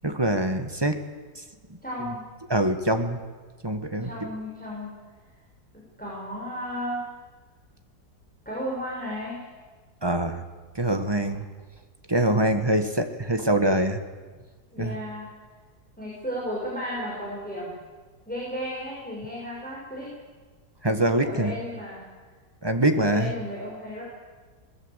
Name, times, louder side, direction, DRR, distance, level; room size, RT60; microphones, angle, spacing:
voice 1, 0.0-1.0 2.5-3.2 3.6-4.1 10.0-10.4 10.7-11.4 12.1-14.0 14.8-15.0 20.8-21.5 22.6-23.3, right 1 dB, 15° right, 7 dB, 1.5 m, -24 dB
voice 2, 1.8-2.2 4.0-4.9 6.0-7.0 8.4-9.5 14.7-15.3 16.0-17.8 18.3-20.1 21.2-22.1 22.9-24.0, equal, 5° left, -5 dB, 6.0 m, -34 dB
22.5 x 20.5 x 8.2 m, 1.4 s
omnidirectional pair, 1.8 m